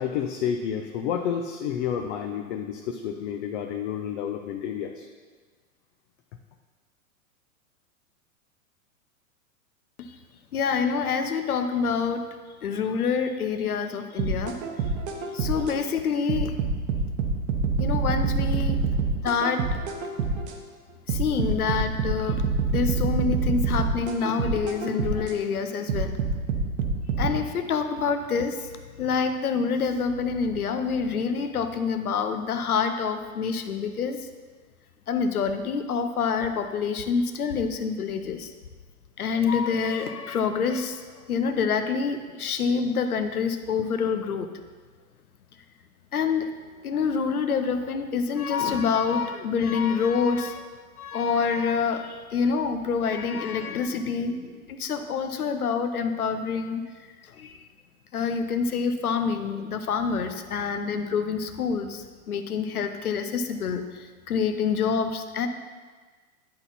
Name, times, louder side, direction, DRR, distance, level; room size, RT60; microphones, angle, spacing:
voice 1, 0.0-5.1, left 8 dB, 50° left, 4 dB, 0.7 m, -30 dB
voice 2, 10.5-12.2 12.6-14.6 15.3-16.6 17.8-18.9 19.2-19.8 21.1-22.4 22.7-26.2 27.2-28.7 29.0-34.3 35.1-38.5 39.2-44.5 46.1-46.5 46.8-50.7 51.0-56.8 57.2-57.6 58.1-65.5, left 6 dB, 85° left, 8 dB, 0.8 m, -27 dB
sound 1, 14.2-15.7 16.3-20.5 21.1-25.4 25.9-27.3, right 4 dB, 50° right, 1.2 m, -26 dB
10.5 x 4.1 x 4.2 m, 1.4 s
hypercardioid pair, 105°, 43 cm